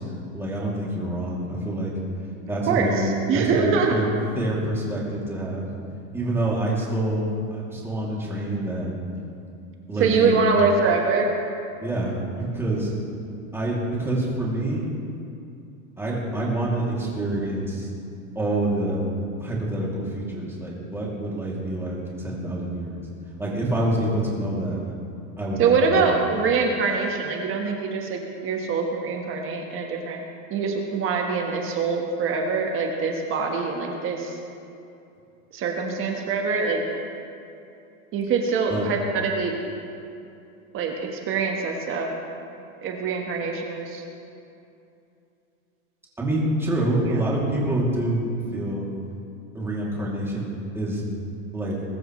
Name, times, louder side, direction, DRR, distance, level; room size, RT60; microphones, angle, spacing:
voice 1, 0.0-1.9 2.5-4.1 4.3-5.7 6.1-8.9 9.9-10.5 11.8-12.9 13.5-14.8 16.0-17.9 18.3-19.0 19.4-23.1 23.4-24.8 25.4-26.2 38.7-38.9 46.2-48.2 48.5-48.9 49.5-51.0 51.5-51.8, right 1 dB, 5° right, -5 dB, 2.7 m, -27 dB
voice 2, 2.7-3.9 10.0-11.3 25.6-30.2 30.5-34.3 35.5-36.8 38.1-39.5 40.7-42.1 42.8-44.0 47.1-47.2, right 5 dB, 30° right, 1 dB, 1.4 m, -24 dB
21.5 x 12.5 x 3.2 m, 2.6 s
supercardioid pair, 150°, 41 cm